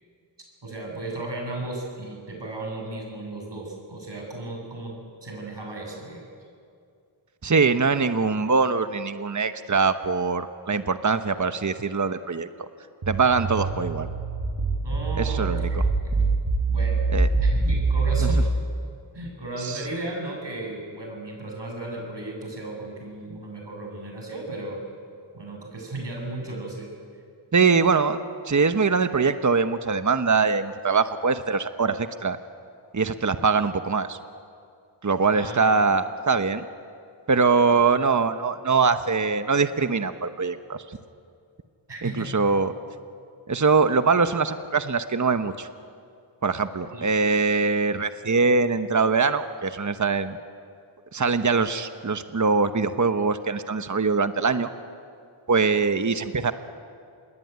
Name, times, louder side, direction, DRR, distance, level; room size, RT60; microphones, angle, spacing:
voice 1, 0.6-6.3 14.8-16.3 16.7-17.0 17.4-18.5 19.1-24.8 25.3-26.9 35.3-35.8 37.6-37.7 41.9-42.3 46.9-47.1, right 2 dB, 55° right, 0 dB, 7.8 m, -35 dB
voice 2, 7.4-12.7 13.1-14.1 15.2-15.7 17.1-17.3 18.2-18.3 19.6-19.8 27.5-32.4 32.9-34.2 35.0-36.6 37.3-41.0 42.0-42.7 43.5-45.7 46.4-50.4 51.1-54.7 55.5-56.5, right 4 dB, 35° right, 10 dB, 1.1 m, -23 dB
sound 1, 13.0-18.4, right 4 dB, 85° right, 5.6 m, -24 dB
27.5 x 21.0 x 9.4 m, 2.4 s
wide cardioid pair, 60°, 49 cm